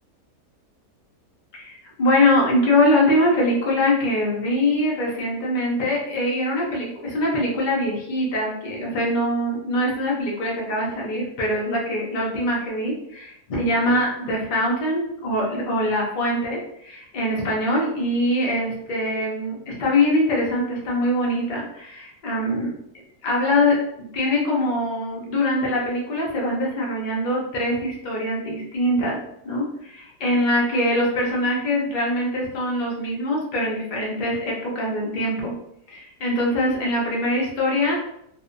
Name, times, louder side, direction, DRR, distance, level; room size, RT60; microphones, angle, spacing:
voice 1, 1.5-22.7 23.2-29.2 29.4-35.5 35.9-38.0, left 1 dB, 85° left, -3 dB, 0.4 m, -23 dB
2.7 x 2.1 x 2.5 m, 0.75 s
omnidirectional pair, 1.7 m